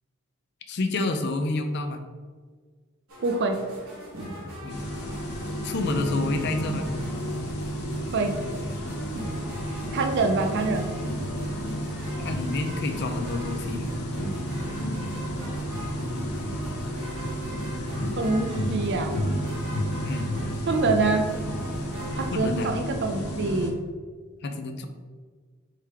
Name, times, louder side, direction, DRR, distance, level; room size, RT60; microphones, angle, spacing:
voice 1, 0.7-2.0 4.6-4.8 5.6-6.9 12.2-13.9 20.0-20.3 22.3-22.7 24.4-24.9, left 2 dB, 50° left, 6 dB, 0.4 m, -29 dB
sound 1, 3.1-22.3, equal, 80° right, 1.4 m, -40 dB
voice 2, 3.2-3.6 8.1-8.4 9.9-10.9 18.2-19.1 20.7-21.3 22.2-23.7, right 3 dB, 50° right, 5 dB, 0.5 m, -25 dB
sound 2, 4.7-23.7, equal, 90° left, 0.8 m, -31 dB
3.8 x 2.9 x 4.5 m, 1.6 s
head